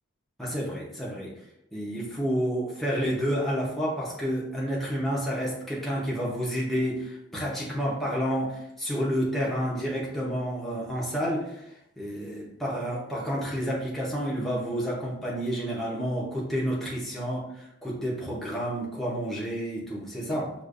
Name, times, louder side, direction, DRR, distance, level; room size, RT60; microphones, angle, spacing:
voice 1, 0.4-1.3 1.7-11.6 12.0-20.5, equal, ahead, -5 dB, 0.7 m, -30 dB
5.0 x 2.4 x 2.5 m, 0.79 s
head